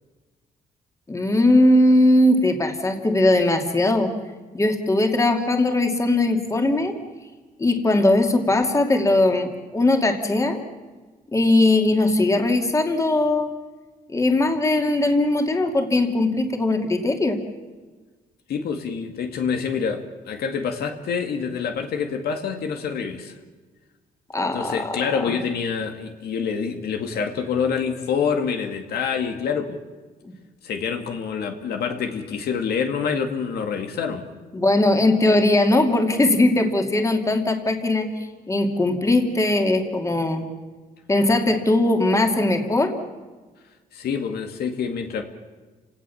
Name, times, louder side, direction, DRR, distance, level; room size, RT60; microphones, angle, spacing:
voice 1, 1.1-4.1 4.5-6.9 7.6-10.6 11.3-13.5 14.1-17.4 24.3-25.4 34.5-38.1 38.5-40.4 41.1-42.9, left 2 dB, 20° left, 4 dB, 2.6 m, -20 dB
voice 2, 18.5-23.3 24.5-29.8 30.6-34.3 43.9-45.2, left 6 dB, 85° left, 5 dB, 2.4 m, -26 dB
30.0 x 18.0 x 7.2 m, 1.3 s
cardioid pair, 135°, 16 cm